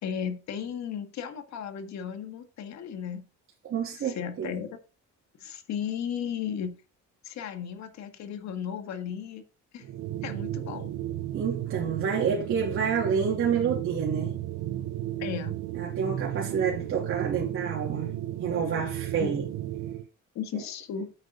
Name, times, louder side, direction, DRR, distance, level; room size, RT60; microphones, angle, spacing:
voice 1, 0.0-3.3 4.0-4.8 5.4-6.8 7.2-9.4 9.7-9.9 10.2-10.9 15.2-15.6 19.2-19.3 20.4-21.1, left 8 dB, 65° left, 1.8 m, -35 dB
voice 2, 3.6-4.5 11.3-14.3 15.7-18.1 18.4-19.4, right 6 dB, 45° right, 3.2 m, -28 dB
sound 1, 9.8-20.1, right 13 dB, 80° right, 0.8 m, -34 dB
9.1 x 8.8 x 3.9 m
cardioid pair, 175°, 30 cm